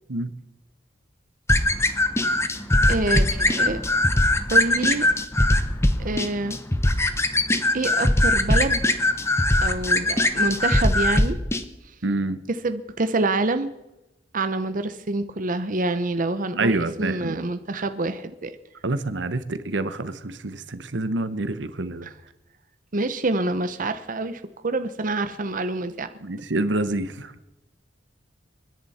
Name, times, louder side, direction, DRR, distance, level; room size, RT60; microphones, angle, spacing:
sound 1, 1.5-11.6, left 1 dB, 15° left, 1.0 m, -21 dB
voice 1, 2.9-3.8 4.5-5.1 6.0-6.6 7.7-9.0 9.6-11.4 12.5-13.7 14.3-18.5 22.0-22.2 22.9-26.1, right 2 dB, 50° right, 10 dB, 0.9 m, -26 dB
voice 2, 12.0-12.4 16.5-17.3 18.8-22.1 26.2-27.3, right 2 dB, 80° right, 12 dB, 1.0 m, -27 dB
29.0 x 10.5 x 4.3 m, 0.96 s
head